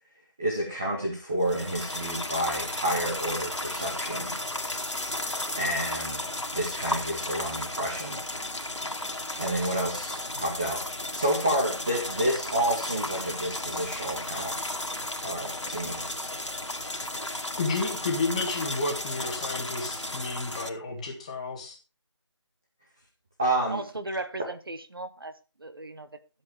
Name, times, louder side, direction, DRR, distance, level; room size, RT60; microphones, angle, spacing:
voice 1, 0.4-4.3 5.6-6.2 6.5-8.2 9.4-10.8 11.1-14.5 15.2-16.0 23.4-23.8, right 1 dB, 5° right, 0.6 m, -29 dB
sound 1, 1.4-20.7, left 1 dB, 75° left, 2.3 m, -34 dB
voice 2, 17.6-21.8, left 3 dB, 15° left, 1.7 m, -31 dB
voice 3, 23.7-25.3 25.6-26.1, right 2 dB, 50° right, 1.3 m, -36 dB
13.5 x 7.5 x 4.8 m
figure-of-eight pair, 165°, 15 cm